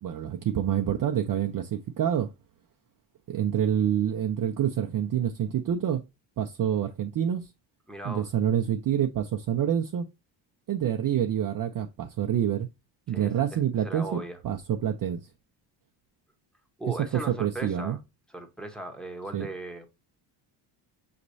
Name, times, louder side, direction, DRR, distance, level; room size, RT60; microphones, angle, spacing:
voice 1, 0.0-2.3 3.3-6.0 6.4-7.5 8.0-10.1 10.7-12.7 13.1-15.2 17.3-18.0 19.3-19.5, right 10 dB, 45° right, 0.6 m, -27 dB
voice 2, 7.9-8.3 13.1-14.4 16.8-18.0 18.3-19.9, right 2 dB, ahead, 1.1 m, -38 dB
5.8 x 3.1 x 2.6 m
cardioid pair, 95°, 50 cm